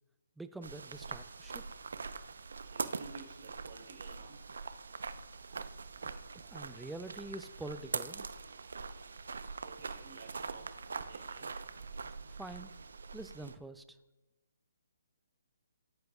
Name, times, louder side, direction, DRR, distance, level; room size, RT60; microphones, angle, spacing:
voice 1, 0.4-1.7 6.3-8.3 12.3-12.7 13.1-14.0, right 2 dB, 5° right, 11 dB, 0.5 m, -46 dB
sound 1, 0.6-13.6, right 4 dB, 75° right, 0.7 m, -43 dB
voice 2, 2.6-4.4 9.6-11.6, right 4 dB, 50° right, 3 dB, 3.6 m, -53 dB
19.0 x 10.5 x 2.4 m, 1.1 s
hypercardioid pair, 145°, 0 cm